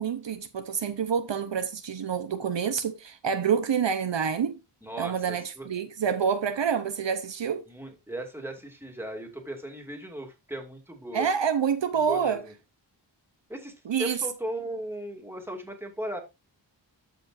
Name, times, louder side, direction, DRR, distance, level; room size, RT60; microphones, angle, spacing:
voice 1, 0.0-4.6 5.0-7.6 11.1-12.4 13.9-14.2, right 7 dB, 75° right, 0.8 m, -27 dB
voice 2, 4.8-5.7 7.7-11.3 12.1-12.5 13.5-16.2, right 1 dB, 5° right, 2.3 m, -37 dB
13.5 x 5.1 x 2.5 m
wide cardioid pair, 80°, 44 cm